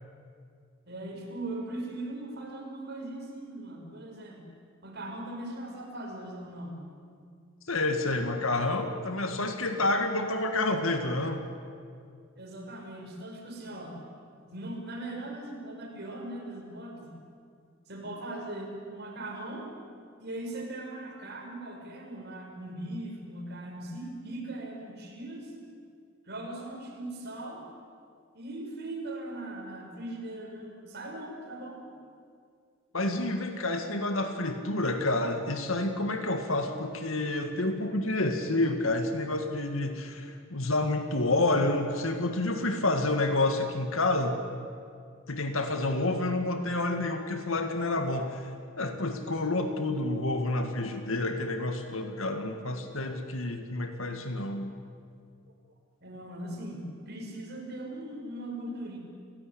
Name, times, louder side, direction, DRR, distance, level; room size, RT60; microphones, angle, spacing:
voice 1, 0.9-4.5 4.8-6.8 12.4-13.9 14.4-17.1 17.9-19.7 20.2-25.5 26.2-27.6 28.3-31.9 56.0-59.0, right 1 dB, 50° right, 1 dB, 5.7 m, -39 dB
voice 2, 7.7-11.4 32.9-44.4 45.3-48.5 48.8-54.7, left 2 dB, 70° left, 6 dB, 2.1 m, -29 dB
30.0 x 17.0 x 10.0 m, 2.2 s
head